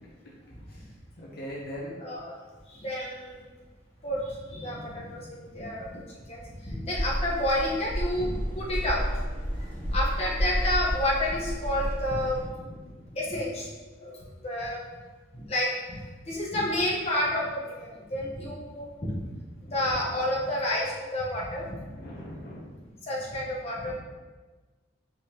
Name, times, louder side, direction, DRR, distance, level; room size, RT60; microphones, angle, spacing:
voice 1, 1.2-2.0 4.6-5.3 12.6-13.1 19.6-20.1 21.9-22.8 23.8-23.9, equal, 55° left, -5 dB, 0.8 m, -42 dB
voice 2, 2.0-2.4 2.7-3.4 4.0-5.9 6.3-9.0 9.6-12.5 13.1-13.7 14.0-14.8 15.3-19.2 19.7-21.9 23.0-23.9, left 1 dB, 35° left, -5 dB, 1.0 m, -30 dB
sound 1, 6.9-12.4, equal, 25° right, 1.2 m, -31 dB
5.0 x 3.7 x 2.8 m, 1.3 s
head